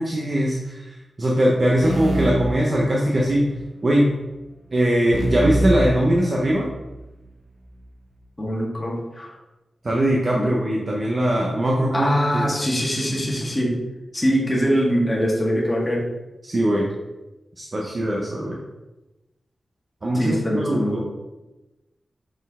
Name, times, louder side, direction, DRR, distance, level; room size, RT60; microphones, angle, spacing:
voice 1, 0.0-3.5 3.8-4.1 4.7-6.7 9.8-12.5 16.4-16.9 17.6-18.6 20.0-21.0, right 1 dB, 40° right, -3 dB, 0.8 m, -21 dB
sound 1, 1.8-3.4 5.1-6.9, right 1 dB, 85° right, 1.1 m, -26 dB
voice 2, 8.4-9.3 10.3-10.5 11.9-13.7 14.1-16.0 20.1-21.0, equal, 20° left, -4 dB, 1.6 m, -23 dB
6.2 x 4.5 x 3.6 m, 1.0 s
wide cardioid pair, 110°, 0 cm